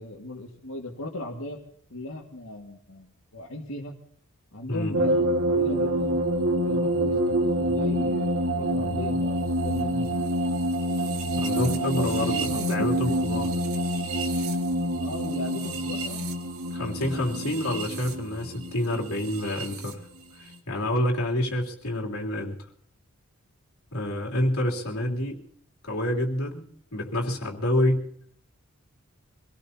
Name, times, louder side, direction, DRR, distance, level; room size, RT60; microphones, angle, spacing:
voice 1, 0.0-1.6 1.9-3.9 4.5-6.2 6.5-10.1 11.5-13.4 15.0-16.3 16.8-17.7 25.0-25.2, left 1 dB, 70° left, -3 dB, 1.9 m, -37 dB
sound 1, 4.9-19.9, right 1 dB, 75° right, 1.7 m, -27 dB
voice 2, 11.4-13.5 16.7-20.0 20.4-22.6 23.9-25.4 25.8-26.7 26.9-28.0, left 1 dB, 90° left, -1 dB, 3.1 m, -28 dB
25.5 x 18.0 x 2.8 m, 0.63 s
head